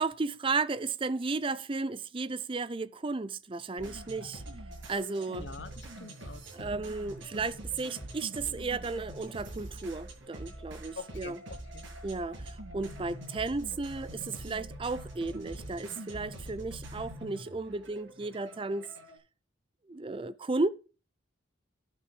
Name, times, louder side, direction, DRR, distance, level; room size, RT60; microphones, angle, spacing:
voice 1, 0.0-4.4 4.9-5.5 6.5-11.4 12.0-18.9 19.9-20.7, right 3 dB, 25° right, 0.5 m, -34 dB
sound 1, 3.8-19.2, right 1 dB, 70° right, 7.9 m, -44 dB
voice 2, 5.3-6.8 11.0-11.8 12.8-13.0, left 4 dB, 60° left, 1.2 m, -46 dB
11.5 x 6.5 x 6.8 m
head